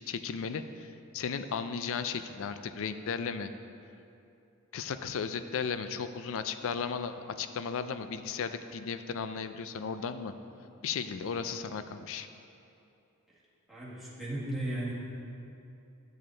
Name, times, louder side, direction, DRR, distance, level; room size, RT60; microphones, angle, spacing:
voice 1, 0.0-3.5 4.7-10.3 10.8-12.3, left 6 dB, 65° left, 10 dB, 0.4 m, -35 dB
voice 2, 13.7-14.9, right 1 dB, ahead, -8 dB, 1.7 m, -35 dB
10.0 x 6.7 x 3.8 m, 2.7 s
head